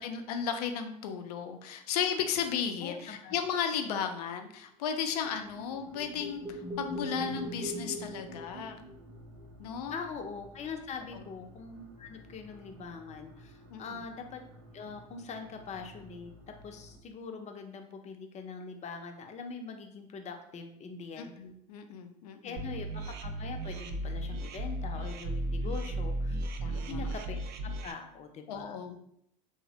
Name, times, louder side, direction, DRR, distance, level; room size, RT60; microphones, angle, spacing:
voice 1, 0.0-8.8 9.6-9.9 11.1-11.2 13.7-14.0 21.2-22.7 25.6-25.7 26.6-27.1 28.5-29.0, left 7 dB, 90° left, 6 dB, 0.4 m, -35 dB
voice 2, 2.8-3.4 9.9-14.4 14.7-16.3 16.6-21.3 22.4-26.4 26.7-27.4 27.8-28.8, left 5 dB, 35° left, 4 dB, 0.5 m, -43 dB
sound 1, 5.1-17.0, equal, 80° right, 0.7 m, -55 dB
sound 2, 5.2-9.3, right 1 dB, 20° right, 0.7 m, -40 dB
sound 3, 22.6-27.9, right 1 dB, 55° right, 0.4 m, -35 dB
3.1 x 2.0 x 2.8 m, 0.73 s
supercardioid pair, 85°, 19 cm